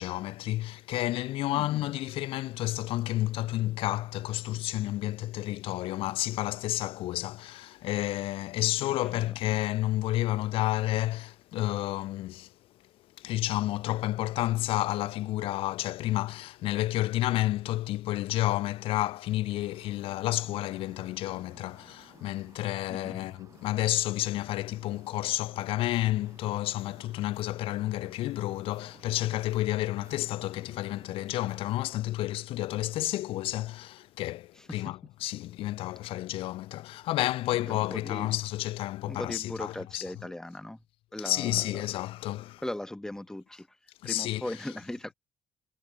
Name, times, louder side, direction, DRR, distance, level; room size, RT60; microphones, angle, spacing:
voice 1, 0.0-12.5 13.2-40.0 41.2-42.6 44.0-44.4, left 16 dB, 90° left, 0.6 m, -30 dB
sound 1, 19.6-31.9, right 6 dB, 35° right, 4.1 m, -57 dB
voice 2, 22.9-23.3 34.6-34.9 37.5-38.3 39.0-40.8 41.1-41.9 42.6-45.1, left 1 dB, 5° left, 1.0 m, -39 dB
cardioid pair, 120°, 9 cm